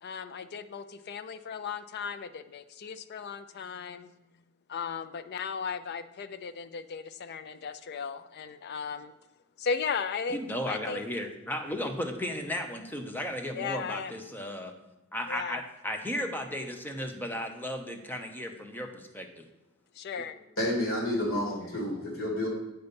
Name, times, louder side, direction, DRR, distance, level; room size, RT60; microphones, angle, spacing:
voice 1, 0.0-4.1 4.7-9.1 9.6-10.4 10.7-11.0 13.6-14.1 15.3-15.6 19.9-20.4, left 6 dB, 55° left, 12 dB, 0.4 m, -36 dB
voice 2, 10.3-14.7 15.1-19.5, left 1 dB, 10° left, 4 dB, 0.7 m, -35 dB
voice 3, 20.6-22.5, left 1 dB, 70° left, -2 dB, 2.6 m, -30 dB
7.9 x 4.0 x 5.2 m, 1.0 s
head